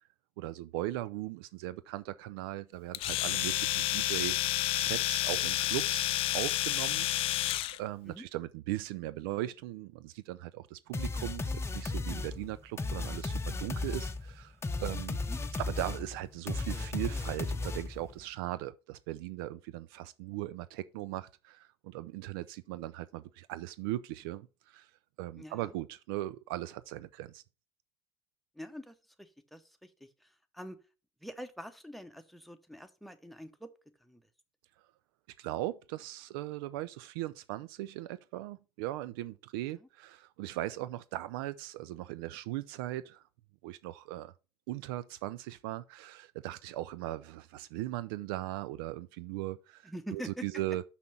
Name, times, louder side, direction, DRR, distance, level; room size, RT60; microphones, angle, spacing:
voice 1, 0.4-4.4 4.7-7.1 7.7-15.2 15.6-24.9 25.2-27.4 35.4-43.2 43.6-44.3 44.7-50.8, right 15 dB, 65° right, 0.4 m, -38 dB
Domestic sounds home sounds, 2.9-7.8, left 15 dB, 45° left, 0.4 m, -30 dB
sound 1, 10.9-18.1, left 3 dB, 20° left, 0.8 m, -35 dB
voice 2, 25.3-25.7 28.5-30.8 31.2-33.7 34.0-34.2 39.7-39.9 49.8-50.4, equal, ahead, 1.0 m, -45 dB
5.9 x 5.7 x 5.8 m
figure-of-eight pair, 60°, 13 cm